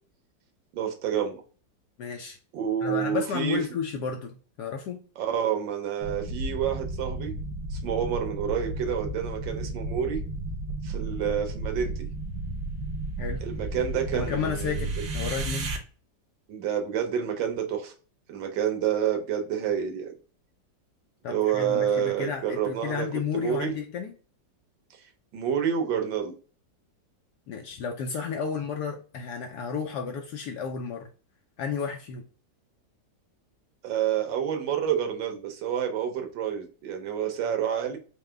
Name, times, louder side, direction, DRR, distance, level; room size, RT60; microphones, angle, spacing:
voice 1, 0.7-1.4 2.5-3.6 5.2-7.3 7.7-10.2 10.8-12.1 13.4-14.9 16.5-17.9 18.3-20.1 21.3-23.1 23.3-23.8 25.3-26.3 33.8-38.0, right 8 dB, 85° right, 1.5 m, -28 dB
voice 2, 2.0-2.4 2.8-5.0 13.2-13.4 14.1-15.8 21.2-24.1 27.5-31.1 31.6-32.3, left 6 dB, 70° left, 1.1 m, -32 dB
sound 1, 6.0-15.8, right 2 dB, 65° right, 1.4 m, -33 dB
4.7 x 2.2 x 3.3 m
omnidirectional pair, 2.0 m